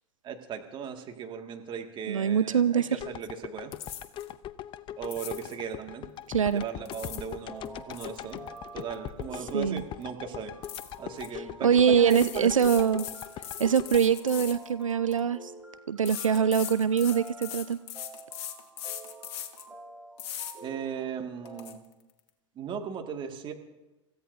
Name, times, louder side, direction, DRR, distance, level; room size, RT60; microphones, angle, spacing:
voice 1, 0.2-3.7 5.0-6.1 6.4-8.4 8.7-10.5 11.0-12.7 20.6-21.8 22.6-23.5, right 7 dB, 30° right, 4 dB, 2.1 m, -37 dB
voice 2, 2.1-3.0 6.3-6.6 9.5-9.8 11.3-13.1 13.6-15.5 15.9-17.8, right 7 dB, 85° right, 15 dB, 0.4 m, -24 dB
sound 1, 3.0-15.2 15.6-15.7, left 11 dB, 30° left, 0.6 m, -41 dB
sound 2, 3.7-4.3 5.0-5.6 6.6-7.3 7.7-9.5 9.8-10.0 10.6-11.3 12.1-15.2 16.1-19.7 20.2-20.5 21.0-21.1 21.5-21.7, left 10 dB, 55° left, 1.6 m, -40 dB
sound 3, 7.4-21.8, right 2 dB, 10° right, 4.6 m, -49 dB
29.0 x 15.5 x 2.7 m, 1.0 s
figure-of-eight pair, 90°, 16 cm